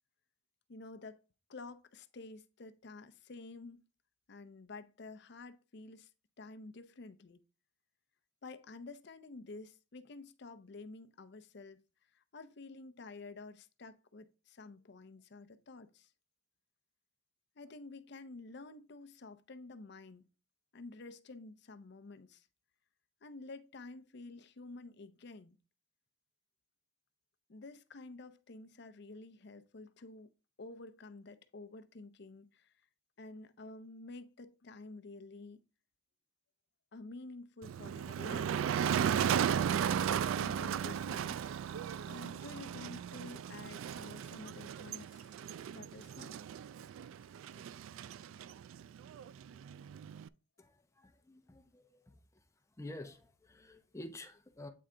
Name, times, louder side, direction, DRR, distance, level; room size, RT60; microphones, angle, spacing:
voice 1, 0.7-1.2 1.5-3.8 4.3-6.1 6.4-7.4 8.4-11.8 12.1-16.1 17.6-20.3 20.7-22.5 23.2-25.6 27.5-30.3 30.6-32.7 33.2-35.6 36.9-38.6 40.1-41.7 42.1-45.3 45.7-46.4, left 3 dB, 55° left, 0.6 m, -50 dB
Motor vehicle (road), 37.6-50.3, right 8 dB, 85° right, 0.3 m, -36 dB
voice 2, 50.6-52.4 52.8-54.7, left 1 dB, 15° left, 0.7 m, -50 dB
8.5 x 3.3 x 3.8 m
head